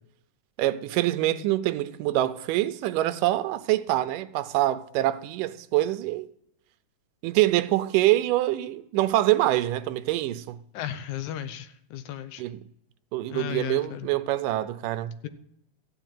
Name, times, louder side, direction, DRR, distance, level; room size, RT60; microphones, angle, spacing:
voice 1, 0.6-6.3 7.2-10.6 12.4-12.6 13.1-15.1, right 15 dB, 90° right, 2.3 m, -25 dB
voice 2, 10.7-12.4 13.3-14.1, left 11 dB, 75° left, 2.1 m, -35 dB
14.5 x 5.9 x 9.0 m
omnidirectional pair, 3.7 m